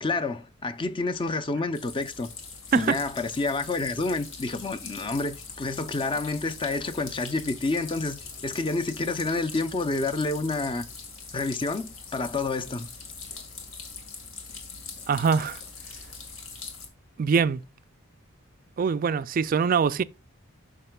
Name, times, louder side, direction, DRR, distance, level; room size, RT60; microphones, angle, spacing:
voice 1, 0.0-2.3 2.7-10.8 11.3-12.9, left 3 dB, 25° left, 0.5 m, -29 dB
sound 1, 1.7-16.9, left 4 dB, 70° left, 1.8 m, -42 dB
voice 2, 15.1-15.6 17.2-17.6 18.8-20.0, right 6 dB, 40° right, 0.3 m, -23 dB
12.0 x 5.8 x 2.3 m
head